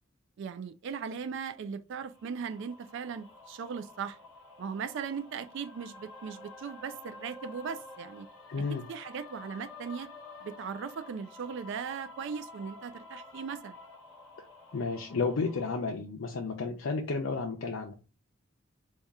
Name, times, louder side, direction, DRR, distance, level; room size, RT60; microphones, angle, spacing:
voice 1, 0.4-4.2 4.6-8.3 8.7-10.1 10.4-13.8, right 6 dB, 60° right, 0.3 m, -38 dB
sound 1, 2.1-15.7, left 3 dB, ahead, 1.1 m, -50 dB
voice 2, 8.5-8.9 14.7-17.9, left 4 dB, 70° left, 0.5 m, -32 dB
4.1 x 2.3 x 3.5 m
head